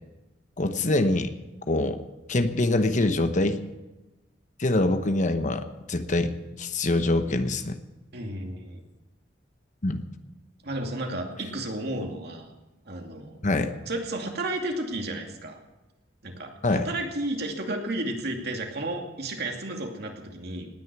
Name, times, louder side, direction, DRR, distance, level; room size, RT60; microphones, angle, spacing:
voice 1, 0.6-1.3 1.7-2.0 2.3-3.6 4.6-7.8 9.8-10.0 13.4-13.7 16.6-16.9, left 2 dB, 45° left, 9 dB, 1.0 m, -24 dB
voice 2, 8.1-8.8 10.6-12.5 12.9-13.4 13.9-15.6 16.2-20.7, right 1 dB, 60° right, 2 dB, 2.5 m, -32 dB
18.5 x 10.0 x 6.1 m, 1.1 s
head